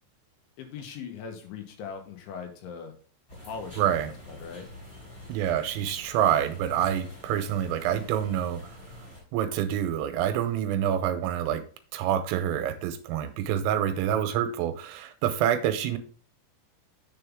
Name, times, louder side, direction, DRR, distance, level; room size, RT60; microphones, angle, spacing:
voice 1, 0.6-2.9 3.4-4.7, left 6 dB, 75° left, 4 dB, 3.4 m, -40 dB
sound 1, 3.3-9.2, left 1 dB, 15° left, 2.6 m, -46 dB
voice 2, 3.8-4.1 5.3-8.8 9.3-11.6 11.9-16.0, right 10 dB, 85° right, 9 dB, 3.4 m, -27 dB
7.6 x 7.1 x 3.6 m, 0.39 s
omnidirectional pair, 5.8 m